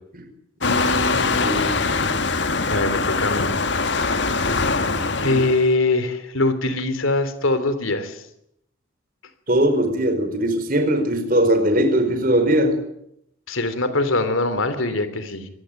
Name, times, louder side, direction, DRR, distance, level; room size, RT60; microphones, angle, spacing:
voice 1, 0.6-1.6 2.7-3.5 5.2-8.2 13.5-15.5, left 2 dB, 85° left, 11 dB, 3.4 m, -23 dB
Waves surf, 0.6-5.7, left 4 dB, 60° left, 1.8 m, -22 dB
voice 2, 1.4-2.0 4.9-5.4 9.5-12.8, right 1 dB, 45° right, 7 dB, 4.8 m, -20 dB
25.0 x 19.0 x 9.2 m, 0.76 s
head